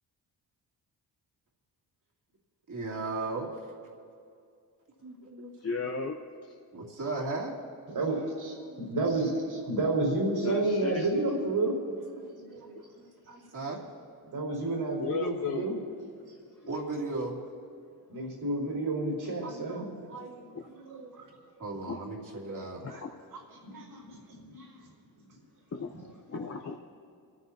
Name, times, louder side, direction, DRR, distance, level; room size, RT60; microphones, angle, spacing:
voice 1, 2.7-3.5 5.0-5.8 6.7-7.6 8.6-8.9 12.1-12.8 13.3-13.8 16.7-17.4 19.4-21.1 21.6-22.8, right 3 dB, 50° right, -2 dB, 3.0 m, -37 dB
voice 2, 5.6-6.2 10.4-11.1 15.0-15.6 21.9-22.0 23.0-23.1 25.7-25.9 26.3-26.8, left 5 dB, 35° left, 0 dB, 0.9 m, -34 dB
voice 3, 7.9-11.8 14.3-15.8 18.1-19.9 20.9-21.2 22.9-23.0 23.3-24.7, right 2 dB, 70° right, -1 dB, 4.6 m, -30 dB
26.0 x 13.5 x 2.9 m, 2.4 s
cardioid pair, 85°, 40 cm